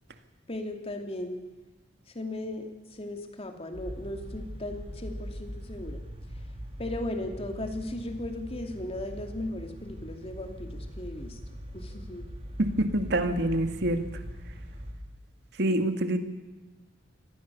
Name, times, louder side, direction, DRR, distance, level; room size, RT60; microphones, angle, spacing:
voice 1, 0.5-1.4 2.1-6.0 6.8-11.4 11.7-12.3, left 1 dB, 30° left, 5 dB, 2.7 m, -37 dB
sound 1, 3.7-14.9, equal, 30° right, 3.9 m, -41 dB
voice 2, 12.6-14.0 15.6-16.2, right 1 dB, 60° right, 7 dB, 2.0 m, -26 dB
24.5 x 18.5 x 7.0 m, 1.2 s
head